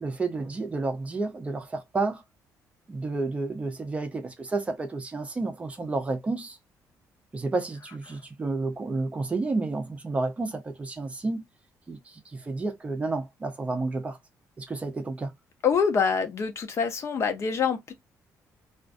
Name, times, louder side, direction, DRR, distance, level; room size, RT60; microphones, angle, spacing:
voice 1, 0.0-2.2 2.9-6.6 7.3-11.4 11.9-14.2 14.6-15.3, right 3 dB, 20° right, 0.6 m, -31 dB
voice 2, 15.6-17.9, left 6 dB, 45° left, 0.6 m, -25 dB
2.4 x 2.4 x 2.4 m
cardioid pair, 150°, 6 cm